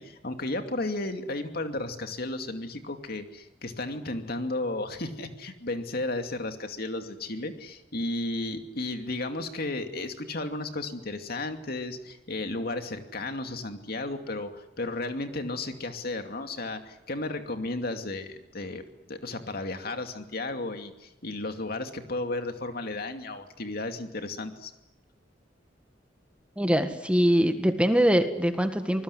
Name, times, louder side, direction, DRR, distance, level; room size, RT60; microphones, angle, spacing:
voice 1, 0.0-18.8 19.1-24.7, left 2 dB, 55° left, 6 dB, 2.6 m, -34 dB
voice 2, 26.6-29.0, equal, 5° right, 7 dB, 1.7 m, -23 dB
26.0 x 20.5 x 9.8 m, 0.90 s
head